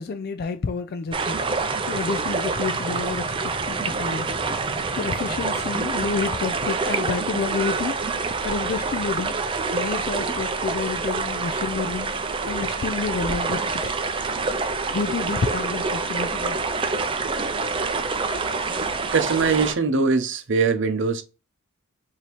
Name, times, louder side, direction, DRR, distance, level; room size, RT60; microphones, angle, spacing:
voice 1, 0.0-1.4 1.9-4.4 5.0-8.0 8.4-9.4 9.7-14.0 14.9-16.6, left 5 dB, 45° left, 0.3 m, -29 dB
sound 1, 1.1-19.7, right 4 dB, 25° right, 0.4 m, -26 dB
voice 2, 19.1-21.2, right 4 dB, 55° right, 0.7 m, -22 dB
4.9 x 2.7 x 3.0 m
head